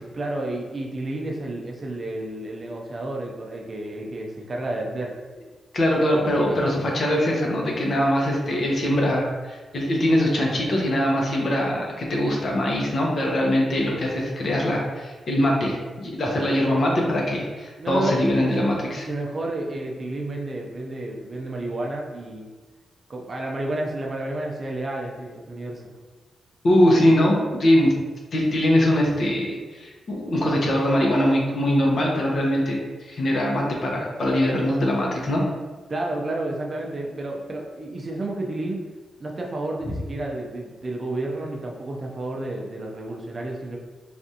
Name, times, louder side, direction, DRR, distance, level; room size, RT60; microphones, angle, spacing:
voice 1, 0.1-5.2 6.5-6.6 17.8-22.5 23.1-25.8 34.5-34.6 35.9-38.8 39.2-43.8, right 2 dB, 40° right, 0 dB, 0.5 m, -31 dB
voice 2, 5.7-19.1 26.6-27.9 28.3-32.8 33.1-35.4, left 1 dB, 55° left, -2 dB, 0.7 m, -22 dB
3.4 x 2.5 x 2.7 m, 1.3 s
cardioid pair, 85°, 0 cm